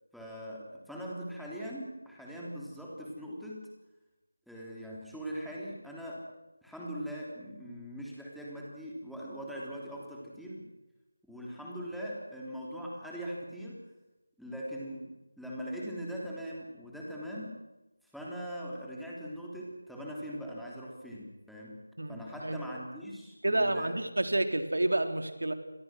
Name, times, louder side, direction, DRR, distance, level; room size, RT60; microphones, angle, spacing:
voice 1, 0.1-3.7 4.5-6.3 6.6-10.7 11.3-13.9 14.4-17.6 18.0-21.8 22.1-23.9, equal, ahead, -5 dB, 3.5 m, -41 dB
voice 2, 22.0-22.6 23.4-25.5, right 1 dB, 75° right, 7 dB, 3.7 m, -29 dB
29.0 x 22.5 x 6.3 m, 1.0 s
figure-of-eight pair, 170°, 0 cm